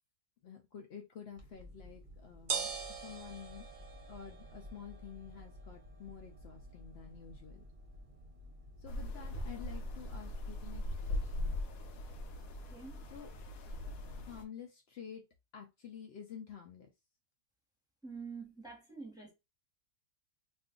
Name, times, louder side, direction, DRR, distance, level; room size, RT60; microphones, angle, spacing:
voice 1, 0.4-3.7 4.1-7.6 8.8-11.6 13.1-13.3 14.1-15.2 15.5-16.9, left 8 dB, 90° left, 0.5 m, -50 dB
sound 1, 1.4-11.4, right 5 dB, 40° right, 0.8 m, -46 dB
sound 2, 8.9-14.4, left 1 dB, 70° left, 1.0 m, -40 dB
voice 2, 12.7-13.0 18.0-19.3, right 5 dB, 5° right, 0.9 m, -46 dB
2.5 x 2.5 x 3.6 m
omnidirectional pair, 1.6 m